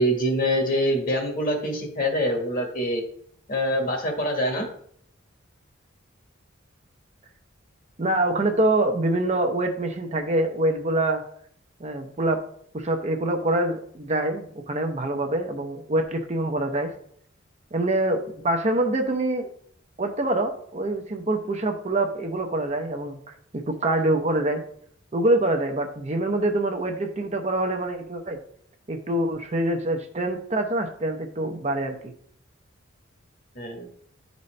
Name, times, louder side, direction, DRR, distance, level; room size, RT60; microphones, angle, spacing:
voice 1, 0.0-3.0 3.5-4.7 33.5-33.9, equal, 45° left, 2 dB, 1.4 m, -25 dB
voice 2, 8.0-11.2 11.8-12.4 12.7-16.9 17.7-19.5 20.0-23.2 23.5-24.6 25.1-28.4 28.9-32.1, right 1 dB, 35° right, 4 dB, 0.6 m, -25 dB
10.5 x 4.1 x 3.2 m, 0.62 s
head